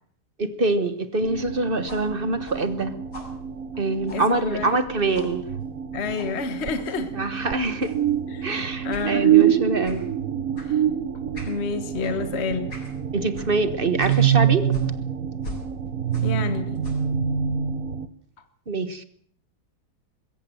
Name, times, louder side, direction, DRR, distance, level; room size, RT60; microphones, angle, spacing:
voice 1, 0.4-2.9 3.8-5.4 7.1-7.9 8.4-10.0 12.1-12.3 13.1-14.7 18.7-19.0, right 2 dB, 35° right, 11 dB, 1.5 m, -25 dB
sound 1, 1.2-18.1, right 10 dB, 55° right, 1.4 m, -26 dB
sound 2, 1.9-4.9 5.1-5.4 6.1-6.4 6.8-7.1 7.8-8.1 8.9-9.1 9.8-10.1 10.5-10.7 11.3-11.6 12.0-12.2 12.7-12.9 13.4-13.5 14.0-14.3 14.7-16.5 16.8-17.1, left 2 dB, 65° left, 8.7 m, -42 dB
voice 2, 4.1-4.7 5.9-7.1 8.3-9.5 10.7-10.8 11.4-12.7 16.2-16.8, left 4 dB, 40° left, 9 dB, 1.6 m, -29 dB
21.5 x 16.5 x 7.7 m, 0.62 s
omnidirectional pair, 1.9 m